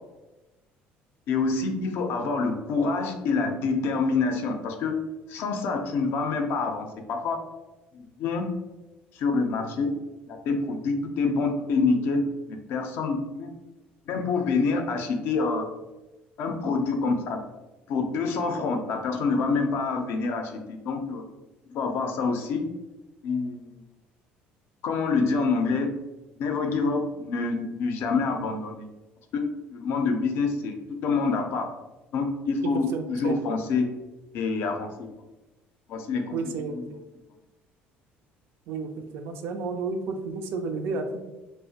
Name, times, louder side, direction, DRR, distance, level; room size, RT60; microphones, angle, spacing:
voice 1, 1.3-5.0 5.3-7.4 7.9-8.5 9.2-9.9 10.3-13.5 14.1-15.7 16.4-17.4 17.9-21.2 21.7-22.7 23.2-23.8 24.8-25.9 26.4-28.9 29.3-30.8 31.0-31.7 32.1-33.9 34.3-34.9 35.9-36.4 36.7-36.9, left 4 dB, 65° left, 5 dB, 0.4 m, -27 dB
voice 2, 32.9-33.4 36.3-36.8 38.7-41.2, right 4 dB, 70° right, 6 dB, 0.3 m, -31 dB
2.4 x 2.1 x 2.6 m, 1.1 s
cardioid pair, 115°, 4 cm